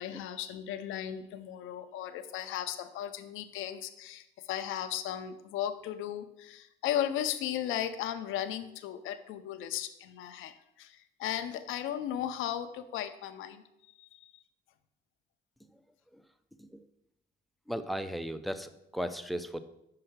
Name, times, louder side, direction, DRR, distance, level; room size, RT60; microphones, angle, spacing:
voice 1, 0.0-13.6 14.0-14.3, left 10 dB, 90° left, 9 dB, 0.6 m, -36 dB
voice 2, 17.7-19.6, equal, ahead, 11 dB, 0.6 m, -35 dB
5.7 x 5.4 x 6.5 m, 0.84 s
cardioid pair, 90°, 20 cm